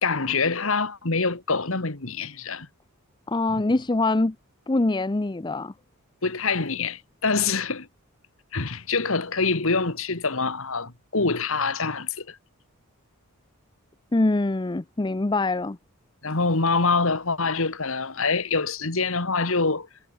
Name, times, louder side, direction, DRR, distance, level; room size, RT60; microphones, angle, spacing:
voice 1, 0.0-2.7 6.2-7.9 8.5-12.4 16.2-19.9, left 4 dB, 65° left, 1.9 m, -25 dB
voice 2, 3.3-4.4 4.7-5.7 14.1-15.8, left 2 dB, 20° left, 0.5 m, -24 dB
head